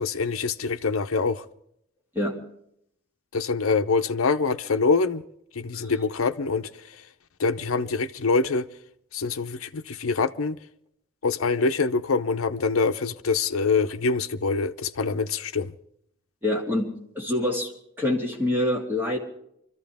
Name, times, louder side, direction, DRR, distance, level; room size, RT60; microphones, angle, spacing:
voice 1, 0.0-1.4 3.3-5.2 5.6-6.7 7.4-8.7 9.1-10.6 11.2-15.7, left 4 dB, 90° left, 0.7 m, -25 dB
voice 2, 16.4-16.9 17.1-17.7 18.0-19.2, left 1 dB, 10° right, 3.0 m, -25 dB
25.0 x 14.0 x 3.5 m
head